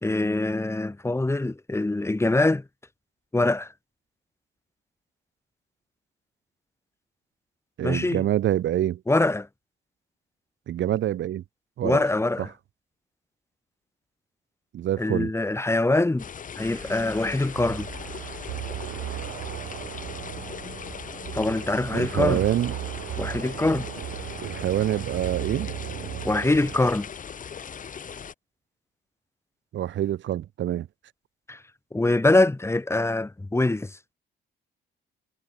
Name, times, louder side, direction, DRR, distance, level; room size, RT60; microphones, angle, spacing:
voice 1, 0.0-2.6 3.3-3.7 7.8-8.2 9.1-9.5 11.8-12.5 15.0-16.3 16.6-17.9 21.3-22.5 23.2-23.9 26.2-27.1 31.5-31.6 31.9-34.0, left 2 dB, 15° left, 2.2 m, -24 dB
voice 2, 7.8-9.0 10.7-11.4 11.8-12.0 14.7-15.3 21.9-22.7 24.4-25.7 29.7-30.9, right 12 dB, 70° right, 1.4 m, -26 dB
sound 1, 16.2-28.3, left 7 dB, 40° left, 1.3 m, -39 dB
sound 2, 16.6-26.9, right 15 dB, 85° right, 4.4 m, -36 dB
cardioid pair, 90°, 20 cm